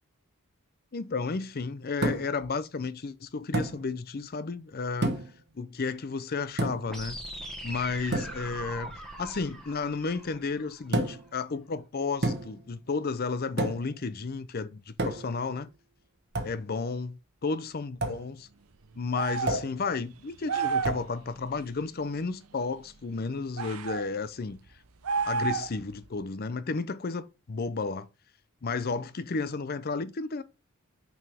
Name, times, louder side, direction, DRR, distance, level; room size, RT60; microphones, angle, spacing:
voice 1, 0.9-5.2 5.6-7.2 7.6-8.9 9.2-15.7 16.4-17.1 17.4-18.5 19.0-24.6 25.2-28.1 28.6-30.4, left 4 dB, 45° left, 0.5 m, -32 dB
sound 1, 2.0-2.4 3.5-3.8 5.0-5.4 6.6-7.0 8.1-8.4 10.9-11.3 12.2-12.6 13.6-13.9 15.0-15.4 16.3-16.6 18.0-18.2 19.5-19.8 20.8-21.1, right 1 dB, 50° right, 1.1 m, -30 dB
sound 2, 6.9-10.9, right 1 dB, ahead, 1.5 m, -41 dB
sound 3, 19.1-19.7 20.5-21.0 23.6-24.0 25.0-25.8, right 5 dB, 75° right, 0.7 m, -30 dB
6.0 x 4.7 x 3.4 m
head